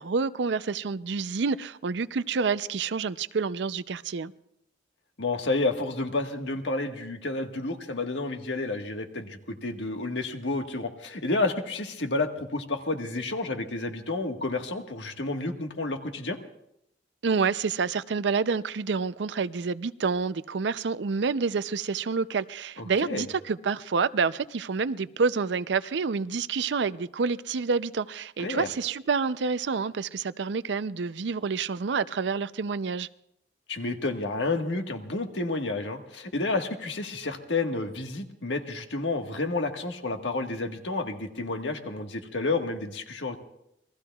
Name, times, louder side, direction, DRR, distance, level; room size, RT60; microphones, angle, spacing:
voice 1, 0.0-4.3 17.2-33.1, right 5 dB, 75° right, 0.5 m, -28 dB
voice 2, 5.2-16.4 22.8-23.3 28.4-28.7 33.7-43.4, left 2 dB, 80° left, 1.5 m, -30 dB
28.0 x 21.0 x 2.4 m
head